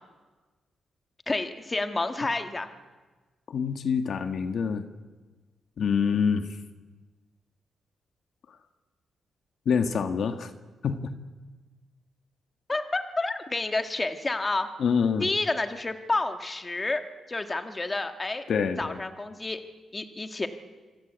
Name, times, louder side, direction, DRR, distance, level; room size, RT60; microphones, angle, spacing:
voice 1, 1.3-2.7 12.7-14.7 15.2-17.0 17.3-18.4 18.8-19.6 19.9-20.5, left 2 dB, 20° left, 7 dB, 1.8 m, -29 dB
voice 2, 3.5-4.8 5.8-6.6 8.5-8.6 9.7-10.5 10.8-11.1 14.8-15.3 18.5-19.0, left 6 dB, 60° left, 7 dB, 1.8 m, -26 dB
27.5 x 24.5 x 8.2 m, 1.3 s
cardioid pair, 125°, 0 cm